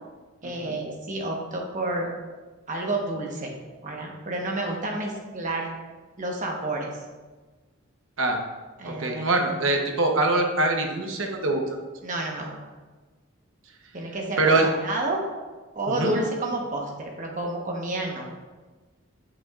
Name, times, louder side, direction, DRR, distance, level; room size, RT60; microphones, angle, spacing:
voice 1, 0.4-2.1 2.7-3.5 3.8-5.7 6.2-7.0 8.8-9.4 12.0-12.5 13.9-15.2 15.7-18.3, right 2 dB, 40° right, 0 dB, 1.2 m, -30 dB
voice 2, 9.0-11.6 14.4-14.7 15.9-16.1, right 2 dB, 70° right, 3 dB, 1.0 m, -23 dB
8.4 x 6.2 x 2.5 m, 1.3 s
head